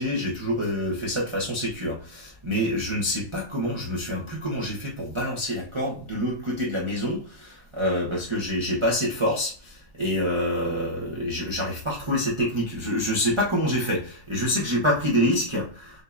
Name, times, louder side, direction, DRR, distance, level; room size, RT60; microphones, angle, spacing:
voice 1, 0.0-16.0, equal, 25° right, -4 dB, 0.7 m, -26 dB
6.3 x 2.7 x 2.4 m, 0.42 s
omnidirectional pair, 2.0 m